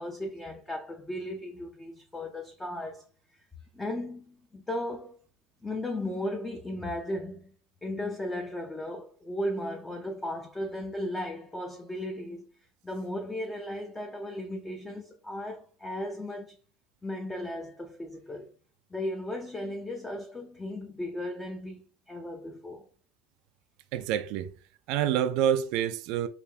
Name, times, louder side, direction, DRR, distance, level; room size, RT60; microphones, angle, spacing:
voice 1, 0.0-3.0 3.7-5.2 5.6-7.5 7.8-12.5 12.8-16.6 17.0-18.5 18.9-22.8, left 1 dB, 10° left, 0.6 m, -36 dB
voice 2, 23.9-24.5 24.9-26.3, right 10 dB, 65° right, 0.4 m, -27 dB
3.3 x 2.5 x 3.4 m
supercardioid pair, 135°, 0 cm